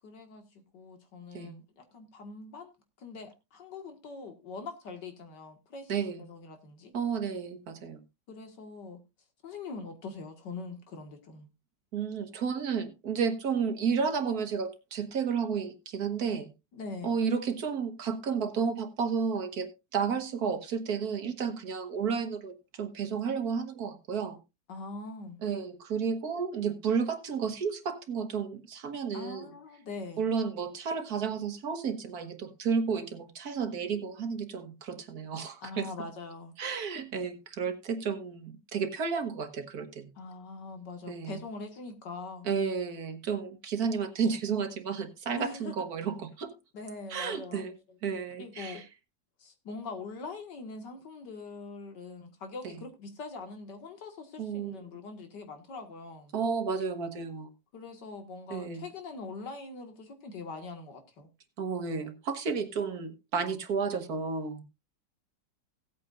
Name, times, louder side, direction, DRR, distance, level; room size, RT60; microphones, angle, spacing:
voice 1, 0.0-5.9 6.2-6.9 8.3-9.0 9.4-11.5 16.7-17.1 24.7-25.4 29.1-30.2 35.6-36.5 40.2-42.5 45.4-45.7 46.7-48.0 48.4-48.8 49.4-56.4 57.7-61.3, left 3 dB, 85° left, 2.4 m, -43 dB
voice 2, 5.9-6.2 6.9-8.0 11.9-16.5 17.0-24.4 25.4-29.5 30.2-35.9 36.6-40.1 41.1-41.4 42.5-46.5 47.1-47.7 48.0-48.8 52.6-52.7 54.4-54.8 56.3-57.5 58.5-58.8 61.6-64.6, right 6 dB, 60° right, 1.7 m, -32 dB
17.5 x 8.5 x 2.5 m
omnidirectional pair, 1.8 m